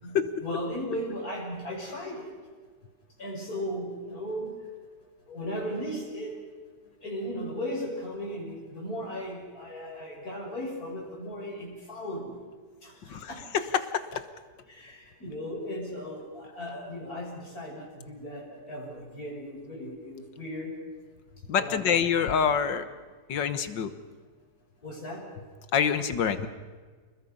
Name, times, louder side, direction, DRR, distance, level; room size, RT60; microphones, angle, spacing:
voice 1, 0.0-2.3 3.2-4.5 5.3-6.4 7.0-12.3 12.8-12.9 13.3-13.4 14.7-20.7 21.6-22.1 24.8-25.2, equal, 55° left, -2 dB, 6.5 m, -36 dB
voice 2, 13.7-14.2 21.5-22.8 23.3-23.9 25.7-26.5, left 7 dB, 80° left, 11 dB, 1.9 m, -26 dB
29.5 x 21.0 x 5.6 m, 1.5 s
omnidirectional pair, 1.9 m